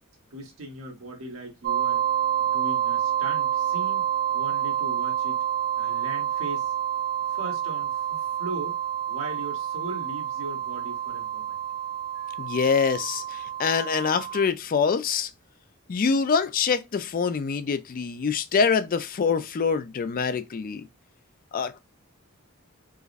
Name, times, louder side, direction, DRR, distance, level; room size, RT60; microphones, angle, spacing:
voice 1, 0.3-2.0 2.4-4.1 4.3-5.4 5.8-6.7 7.3-8.8 9.1-11.5, right 2 dB, 80° right, 1.3 m, -38 dB
sound 1, 1.6-14.5, right 10 dB, 45° right, 0.3 m, -28 dB
voice 2, 12.4-15.3 15.9-20.8 21.5-21.8, left 5 dB, 40° left, 0.4 m, -25 dB
4.7 x 2.1 x 2.5 m
head